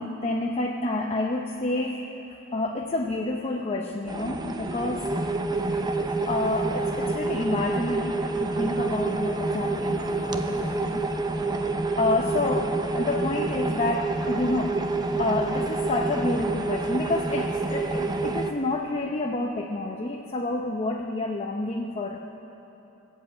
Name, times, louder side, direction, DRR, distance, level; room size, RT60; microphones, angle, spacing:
voice 1, 0.0-2.3 2.5-5.1 5.5-5.8 6.3-11.1 12.0-14.8 15.2-22.4, left 2 dB, 30° left, 1 dB, 0.7 m, -29 dB
sound 1, 4.1-18.5, right 3 dB, 20° right, 0.7 m, -28 dB
19.0 x 8.3 x 7.7 m, 3.0 s
head